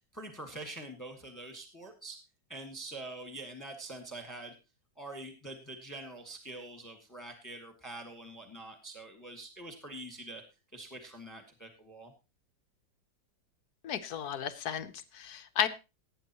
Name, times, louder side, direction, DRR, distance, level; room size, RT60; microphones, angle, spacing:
voice 1, 0.1-2.2 2.5-4.5 5.0-10.4 10.7-12.1, right 2 dB, 10° left, 4 dB, 1.7 m, -45 dB
voice 2, 13.8-15.7, left 9 dB, 65° left, 11 dB, 1.2 m, -34 dB
18.0 x 9.2 x 3.0 m, 0.28 s
omnidirectional pair, 2.0 m